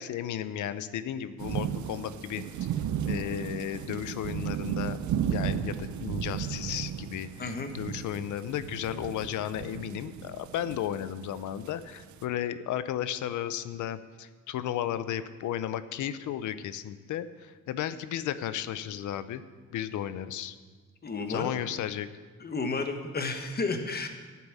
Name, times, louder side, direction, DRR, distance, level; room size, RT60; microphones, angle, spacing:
voice 1, 0.0-2.4 3.0-5.0 5.3-19.4 19.7-20.6 21.3-22.1, left 10 dB, 80° left, 13 dB, 0.7 m, -34 dB
sound 1, 1.4-12.2, right 9 dB, 75° right, 0.7 m, -34 dB
voice 2, 7.4-7.7 21.0-21.5 22.4-24.1, left 3 dB, 30° left, 6 dB, 1.3 m, -32 dB
10.5 x 8.5 x 7.2 m, 1.4 s
cardioid pair, 110°, 30 cm